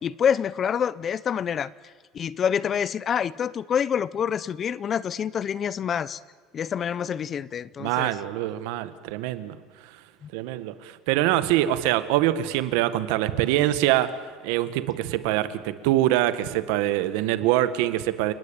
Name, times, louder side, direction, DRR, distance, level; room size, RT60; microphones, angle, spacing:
voice 1, 0.0-1.7 2.1-6.2 6.5-8.2 10.2-10.3, left 8 dB, 30° left, 19 dB, 0.7 m, -27 dB
voice 2, 7.8-9.6 10.3-14.1 14.4-18.3, right 14 dB, 80° right, 12 dB, 1.7 m, -24 dB
29.5 x 19.5 x 9.0 m, 1.4 s
cardioid pair, 155°, 0 cm